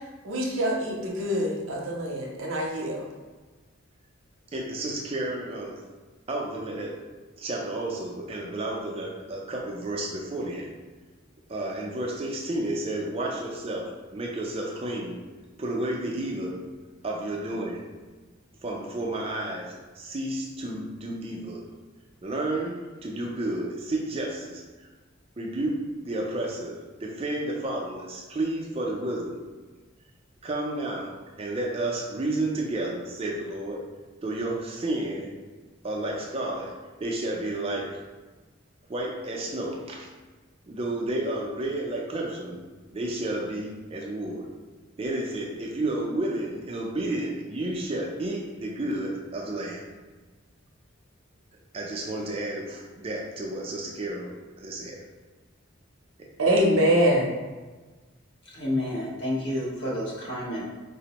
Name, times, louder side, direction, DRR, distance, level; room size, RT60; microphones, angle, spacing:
voice 1, 0.2-3.1 56.4-57.3, equal, 75° right, -1 dB, 0.6 m, -24 dB
voice 2, 4.5-5.8 6.3-7.0 7.4-10.7 11.5-15.2 15.6-16.6 17.0-17.9 18.6-21.6 22.2-24.9 25.4-29.4 30.4-33.8 34.2-35.3 35.8-38.0 38.9-40.1 40.7-42.6 42.9-44.5 45.0-49.8 51.7-54.3 54.6-55.0, right 1 dB, 30° right, -1 dB, 0.4 m, -31 dB
voice 3, 58.5-60.6, left 1 dB, 55° left, -5 dB, 0.9 m, -30 dB
4.1 x 2.0 x 2.8 m, 1.3 s
head